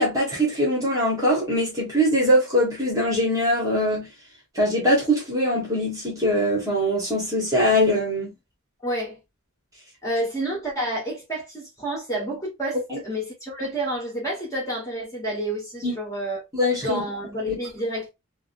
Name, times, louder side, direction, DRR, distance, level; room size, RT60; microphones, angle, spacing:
voice 1, 0.0-4.1 4.5-8.3 12.9-13.0 15.8-15.9 16.5-17.0 17.5-17.6, equal, 15° right, 1.2 m, -22 dB
voice 2, 8.8-9.2 10.0-16.4 16.8-18.1, right 1 dB, 15° left, 1.4 m, -29 dB
3.4 x 2.1 x 2.5 m
head